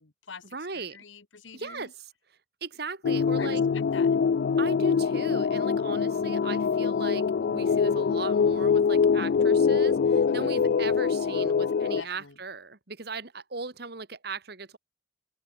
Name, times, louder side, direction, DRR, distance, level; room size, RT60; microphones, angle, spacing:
voice 1, 0.0-1.9 3.4-4.2 10.3-10.6 12.0-12.4, left 5 dB, 85° left, 1.6 m, -45 dB
voice 2, 0.5-1.0 1.5-2.1 2.6-3.6 4.6-14.8, right 4 dB, 55° right, 1.7 m, -38 dB
sound 1, 3.0-12.0, left 6 dB, 60° left, 0.3 m, -24 dB
head